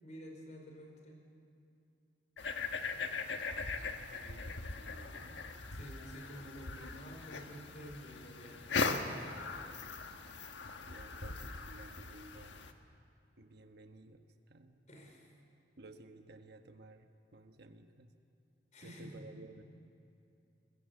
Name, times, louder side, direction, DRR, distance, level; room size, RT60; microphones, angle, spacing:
voice 1, 0.0-1.2 5.7-9.3 14.9-15.3 18.7-19.3, equal, 40° left, 1 dB, 4.8 m, -50 dB
sound 1, 2.4-12.7, left 4 dB, 85° left, 1.4 m, -40 dB
voice 2, 4.1-5.6 10.9-12.7 13.4-14.8 15.8-18.1 18.8-19.6, right 2 dB, 60° right, 6 dB, 1.3 m, -55 dB
21.5 x 21.0 x 8.2 m, 2.6 s
head